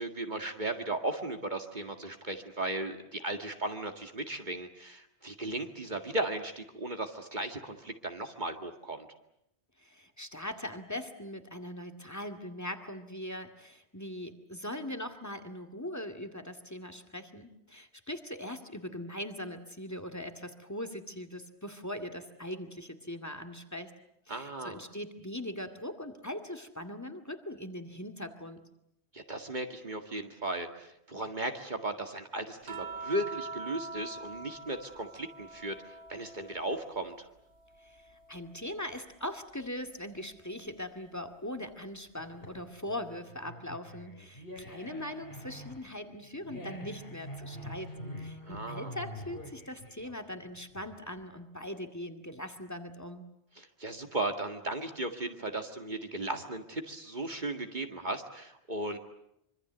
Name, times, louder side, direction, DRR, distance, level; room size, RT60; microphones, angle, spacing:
voice 1, 0.0-9.1 24.3-24.8 29.1-35.8 36.1-37.1 48.4-48.9 53.6-59.0, right 1 dB, 45° right, 5 dB, 2.1 m, -36 dB
voice 2, 9.8-23.9 24.3-28.7 37.8-47.9 48.2-53.3, left 1 dB, 15° left, 10 dB, 2.2 m, -41 dB
sound 1, 32.7-37.2 37.5-39.1 40.7-40.8, right 4 dB, 90° right, 1.9 m, -45 dB
sound 2, 42.2-51.2, equal, 60° left, 4.1 m, -45 dB
25.5 x 25.0 x 8.1 m, 0.78 s
omnidirectional pair, 1.1 m